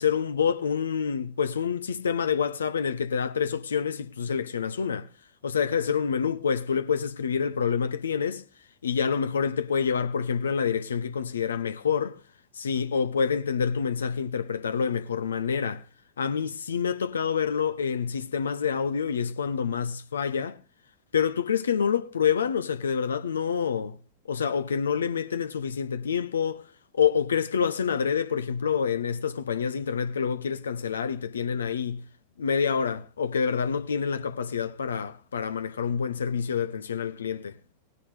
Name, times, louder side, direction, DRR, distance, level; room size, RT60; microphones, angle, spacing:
voice 1, 0.0-5.1 5.4-8.4 8.8-12.2 12.5-15.8 16.2-20.6 21.1-24.0 24.3-26.7 26.9-32.0 32.4-37.6, left 7 dB, 70° left, 0.7 m, -27 dB
19.0 x 9.9 x 3.2 m
figure-of-eight pair, 90°, 0 cm